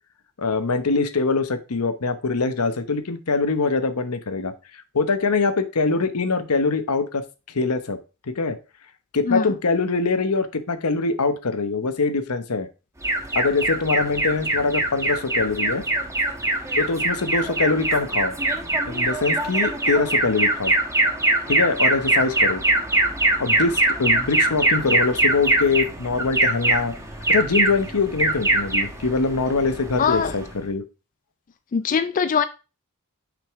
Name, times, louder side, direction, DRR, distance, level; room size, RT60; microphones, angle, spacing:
voice 1, 0.4-7.2 7.5-8.0 8.3-8.6 9.1-12.7 13.3-15.8 16.8-18.3 18.9-20.7 21.5-22.6 23.4-26.9 27.3-30.8, left 4 dB, 75° left, 0.9 m, -23 dB
Alarm, 13.0-30.6, right 2 dB, 15° right, 1.1 m, -23 dB
voice 2, 30.0-30.3 31.7-32.4, left 6 dB, 35° left, 0.3 m, -21 dB
6.1 x 5.2 x 3.5 m
head